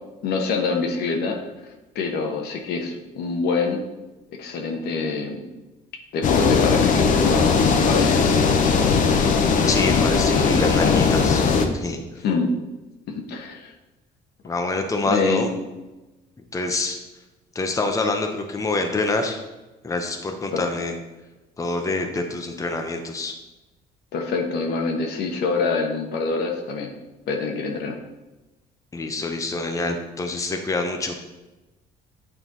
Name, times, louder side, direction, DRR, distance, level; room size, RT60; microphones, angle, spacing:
voice 1, 0.2-1.4 1.9-3.8 4.4-5.4 6.1-8.3 12.2-12.5 13.1-13.7 15.1-15.5 20.5-20.7 24.1-26.9 27.3-28.0, left 4 dB, 70° left, 3 dB, 1.2 m, -25 dB
sound 1, 6.2-11.7, left 5 dB, 50° left, 0.9 m, -18 dB
voice 2, 9.7-11.4 11.7-12.0 14.4-15.5 16.5-17.0 17.5-19.4 19.8-20.9 21.6-23.3 28.9-31.2, left 3 dB, 20° left, 4 dB, 0.8 m, -26 dB
9.0 x 4.5 x 3.9 m, 1.1 s
cardioid pair, 110°, 17 cm